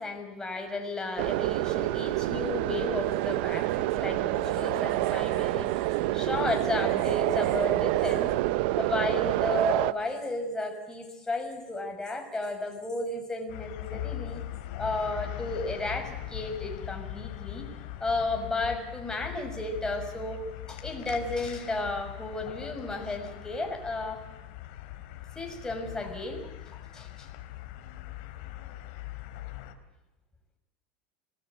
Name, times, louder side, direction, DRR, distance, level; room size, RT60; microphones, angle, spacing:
voice 1, 0.0-8.4 8.8-14.4 14.8-17.7 18.0-24.2 25.3-26.5 26.9-27.3, left 2 dB, 10° left, 3 dB, 6.3 m, -33 dB
sound 1, 1.2-9.9, right 17 dB, 70° right, 0.9 m, -27 dB
sound 2, 13.5-29.7, left 14 dB, 70° left, 3.3 m, -41 dB
27.0 x 20.0 x 8.3 m, 1.0 s
supercardioid pair, 115°, 6 cm